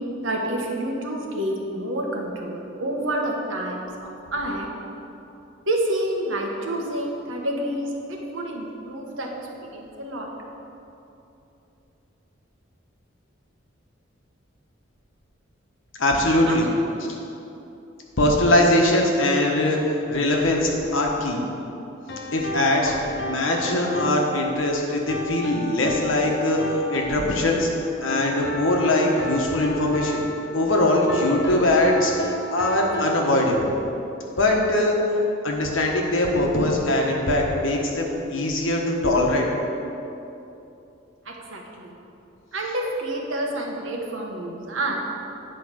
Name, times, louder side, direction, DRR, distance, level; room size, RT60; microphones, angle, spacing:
voice 1, 0.2-4.7 5.6-9.3 9.6-10.3 16.5-16.9 41.2-41.9 42.5-45.0, right 1 dB, 80° right, 0 dB, 1.3 m, -28 dB
voice 2, 16.0-16.7 17.0-17.2 18.2-19.8 20.1-21.4 22.3-27.7 28.0-30.2 30.5-33.7 34.3-35.0 35.4-39.5, left 1 dB, 80° left, 0 dB, 1.3 m, -21 dB
sound 1, 22.1-33.2, equal, 55° left, 0.9 m, -33 dB
9.3 x 4.8 x 6.4 m, 2.8 s
head